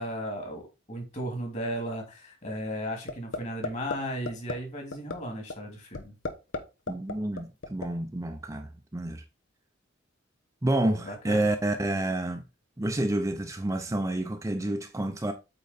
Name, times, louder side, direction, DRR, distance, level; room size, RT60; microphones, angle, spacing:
voice 1, 0.0-6.1 11.0-11.4, equal, 40° left, 2.7 m, -35 dB
sound 1, 3.1-3.4 3.6-4.0 4.3-4.5 4.9-5.1 5.5-5.6 5.9-6.6 6.9-7.9, left 3 dB, 75° left, 1.0 m, -32 dB
voice 2, 6.9-9.2 10.6-12.4 12.8-15.3, right 1 dB, 15° right, 0.6 m, -29 dB
8.3 x 3.9 x 4.1 m
head